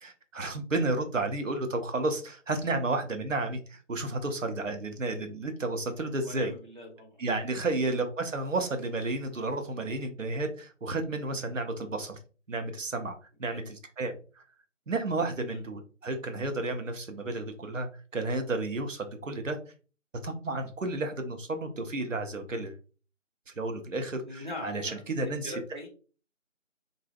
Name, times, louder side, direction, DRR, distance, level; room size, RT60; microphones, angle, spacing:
voice 1, 0.0-6.5 7.2-12.2 12.5-14.2 14.9-19.6 20.2-22.8 23.6-25.5, right 2 dB, 75° right, 7 dB, 0.7 m, -32 dB
voice 2, 6.2-7.2 7.7-7.9 13.5-13.7 15.5-15.6 24.2-25.9, left 1 dB, 40° right, -1 dB, 0.8 m, -42 dB
3.9 x 2.0 x 2.3 m, 0.37 s
figure-of-eight pair, 175°, 38 cm